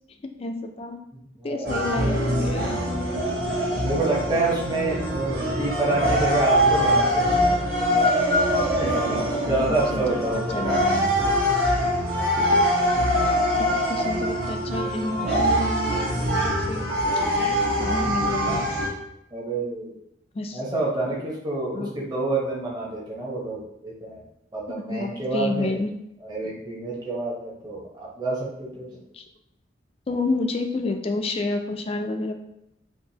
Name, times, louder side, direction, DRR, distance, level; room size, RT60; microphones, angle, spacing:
voice 1, 0.2-1.0 1.4-2.8 9.6-10.1 10.3-11.2 12.3-12.6 13.6-16.9 17.8-18.9 20.3-20.6 21.1-21.3 21.7-21.9 24.7-25.9 29.1-29.2 30.1-32.3, left 2 dB, 30° left, 6 dB, 0.3 m, -30 dB
voice 2, 1.1-1.8 3.8-7.6 7.9-8.0 8.8-10.7 19.3-19.9 20.5-24.2 24.5-25.8 26.2-28.9 30.1-30.2, right 2 dB, 20° right, -5 dB, 1.0 m, -28 dB
sound 1, 1.6-18.9, equal, 55° right, 1.2 m, -23 dB
4.7 x 2.6 x 2.8 m, 0.82 s
head